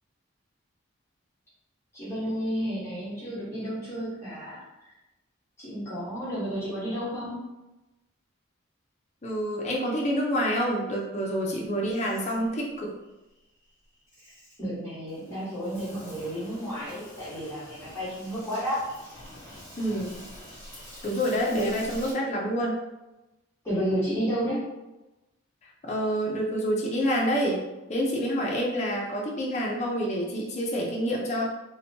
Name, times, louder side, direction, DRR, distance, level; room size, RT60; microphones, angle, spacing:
voice 1, 1.9-4.6 5.6-7.4 14.6-18.8 21.5-21.7 23.6-24.6, equal, 10° left, -12 dB, 1.3 m, -31 dB
voice 2, 9.2-12.9 19.8-20.1 21.0-22.8 25.9-27.6 27.9-31.4, equal, 35° left, -2 dB, 0.5 m, -27 dB
Insect, 11.5-22.1, equal, 15° right, 1.1 m, -47 dB
2.9 x 2.1 x 2.8 m, 1.0 s
head